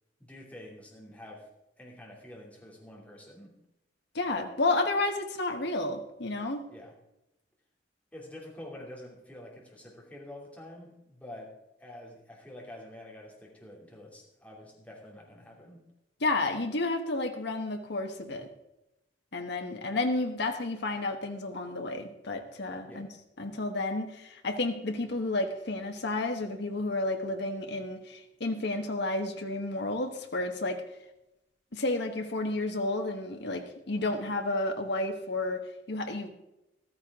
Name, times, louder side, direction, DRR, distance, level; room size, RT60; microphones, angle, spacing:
voice 1, 0.2-1.5 1.8-3.6 6.7-7.0 8.1-11.5 11.8-15.8 22.9-23.1, left 1 dB, 10° left, -3 dB, 2.7 m, -47 dB
voice 2, 4.1-6.6 16.2-18.5 19.3-23.1 23.4-30.8 31.7-35.6 35.9-36.3, left 2 dB, 65° left, 5 dB, 1.3 m, -31 dB
14.5 x 13.5 x 3.6 m, 0.89 s
head